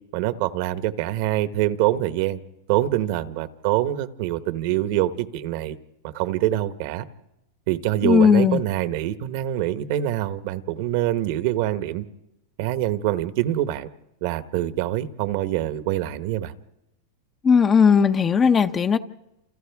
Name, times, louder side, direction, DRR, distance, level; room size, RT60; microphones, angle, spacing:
voice 1, 0.1-2.4 2.7-5.8 6.0-7.0 7.7-12.0 12.6-13.9 14.2-16.5, right 14 dB, 55° right, 1.1 m, -25 dB
voice 2, 8.0-8.6 17.4-19.0, left 6 dB, 20° left, 0.7 m, -17 dB
29.0 x 28.0 x 3.5 m
supercardioid pair, 145°, 0 cm